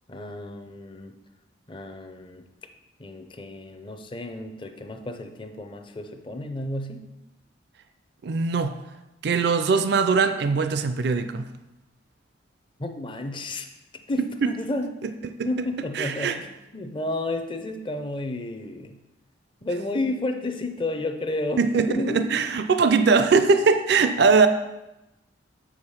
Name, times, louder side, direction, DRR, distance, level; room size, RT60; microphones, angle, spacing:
voice 1, 0.1-1.1 1.7-2.5 3.0-7.1 12.8-13.7 14.1-14.9 15.5-19.0 19.6-21.6 21.9-22.2, left 2 dB, 25° left, 7 dB, 0.6 m, -31 dB
voice 2, 8.2-8.7 9.2-11.5 14.4-14.5 15.4-15.5 16.0-16.4 21.6-24.5, right 4 dB, 60° right, 9 dB, 0.4 m, -21 dB
6.8 x 4.9 x 5.5 m, 0.99 s
head